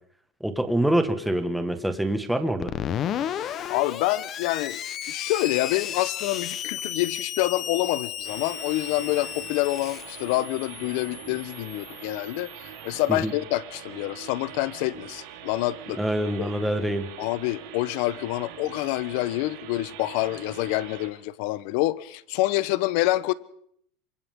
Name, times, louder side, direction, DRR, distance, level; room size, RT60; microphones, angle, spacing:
voice 1, 0.4-2.7 13.1-13.3 16.0-17.1, right 1 dB, ahead, 1.5 m, -25 dB
Screech, 2.6-13.1, left 9 dB, 30° left, 1.0 m, -34 dB
voice 2, 3.7-4.8 5.1-16.0 16.4-16.5 17.2-23.3, left 17 dB, 60° left, 0.9 m, -27 dB
sound 1, 8.2-21.1, right 10 dB, 80° right, 5.5 m, -43 dB
28.0 x 25.0 x 3.7 m
supercardioid pair, 160°, 0 cm